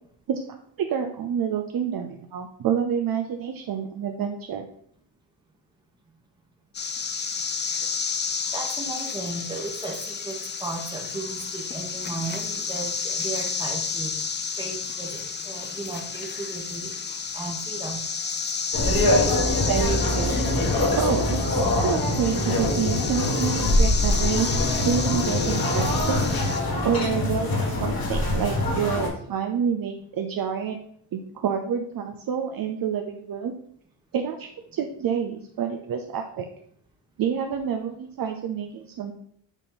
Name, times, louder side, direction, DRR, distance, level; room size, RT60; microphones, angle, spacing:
voice 1, 0.8-4.7 19.6-20.6 21.0-21.6 21.8-26.5 26.8-30.8 31.1-33.5 34.1-36.5 37.2-39.1, right 7 dB, 55° right, 4 dB, 0.6 m, -28 dB
sound 1, 6.7-26.6, left 5 dB, 25° left, 0.4 m, -31 dB
voice 2, 8.5-14.1 14.6-16.9 17.3-18.0, right 3 dB, 10° right, 0 dB, 1.1 m, -35 dB
sound 2, 18.7-29.1, left 1 dB, 55° left, 1.8 m, -23 dB
8.1 x 4.2 x 3.9 m, 0.66 s
wide cardioid pair, 155°, 43 cm